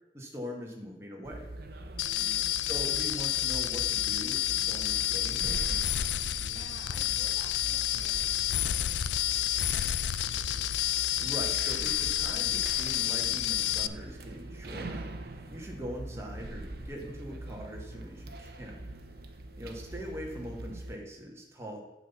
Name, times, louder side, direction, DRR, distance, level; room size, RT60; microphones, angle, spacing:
voice 1, 0.1-1.5 2.6-5.8 11.2-18.9 19.6-21.8, equal, 15° right, -1 dB, 1.5 m, -42 dB
sound 1, 1.2-21.0, right 2 dB, 55° right, 0.8 m, -42 dB
sound 2, 2.0-13.9, left 13 dB, 90° left, 0.4 m, -30 dB
voice 2, 2.1-2.7 6.4-10.1 19.6-20.0, right 2 dB, 30° right, 0 dB, 1.7 m, -52 dB
9.1 x 4.1 x 7.0 m, 1.0 s
head